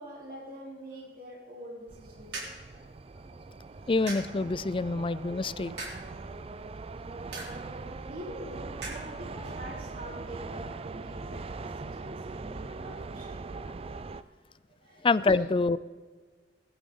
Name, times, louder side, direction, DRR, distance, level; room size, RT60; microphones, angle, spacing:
voice 1, 0.0-2.9 3.7-3.9 8.1-13.4 14.2-14.3 14.8-15.1, equal, 55° right, -3 dB, 3.9 m, -45 dB
sound 1, 1.8-11.2, right 3 dB, 70° right, 4.1 m, -47 dB
sound 2, 1.9-14.2, right 3 dB, 35° right, 0.4 m, -41 dB
voice 2, 3.9-5.9 15.0-15.8, left 3 dB, 30° left, 17 dB, 0.4 m, -26 dB
20.5 x 12.0 x 3.8 m, 1.4 s
head